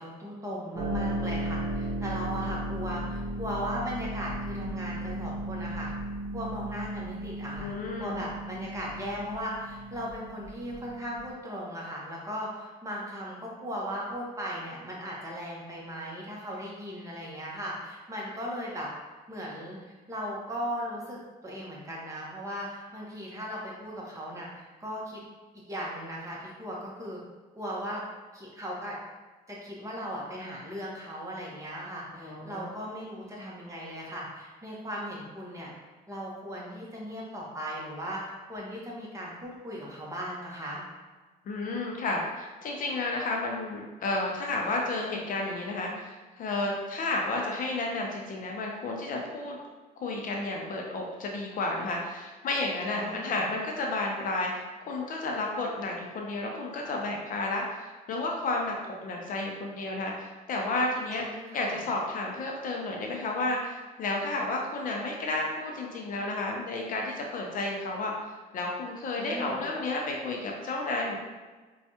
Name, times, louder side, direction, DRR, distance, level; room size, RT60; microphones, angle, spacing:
voice 1, 0.0-5.9 6.3-18.9 19.3-25.2 25.7-27.2 27.6-28.0 28.3-29.0 29.5-35.7 36.1-40.8 52.9-53.4 61.1-61.8 69.2-69.6, equal, 20° right, -4 dB, 0.9 m, -37 dB
Harp, 0.7-11.3, right 1 dB, 60° right, 0.8 m, -35 dB
voice 2, 7.6-8.2 32.2-32.7 41.5-49.6 50.0-58.8 59.0-61.2 61.5-68.1 68.5-71.2, left 2 dB, 55° left, 0 dB, 0.6 m, -32 dB
4.4 x 2.3 x 2.8 m, 1.3 s
cardioid pair, 110°, 17 cm